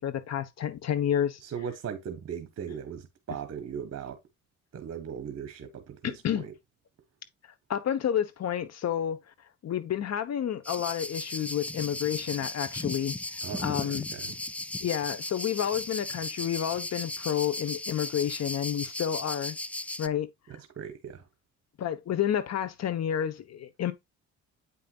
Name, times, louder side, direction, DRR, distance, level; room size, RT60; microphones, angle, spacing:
voice 1, 0.0-1.4 6.0-6.5 7.7-9.2 9.6-13.2 13.6-14.1 14.8-19.6 20.0-20.3 21.8-23.9, left 9 dB, 60° left, 1.2 m, -30 dB
voice 2, 1.4-4.2 4.7-6.5 13.4-14.4 20.5-21.3, right 7 dB, 55° right, 1.3 m, -38 dB
sound 1, 10.6-20.1, left 1 dB, 5° left, 0.3 m, -36 dB
8.4 x 5.6 x 2.4 m
cardioid pair, 90°, 30 cm